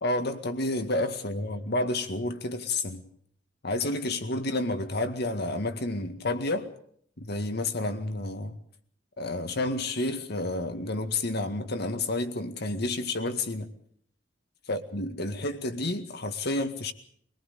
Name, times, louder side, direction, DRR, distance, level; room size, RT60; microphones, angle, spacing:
voice 1, 0.0-3.0 3.6-6.7 7.2-8.6 9.2-13.7 14.7-16.9, left 2 dB, 60° left, 2.0 m, -30 dB
24.0 x 19.0 x 6.9 m
head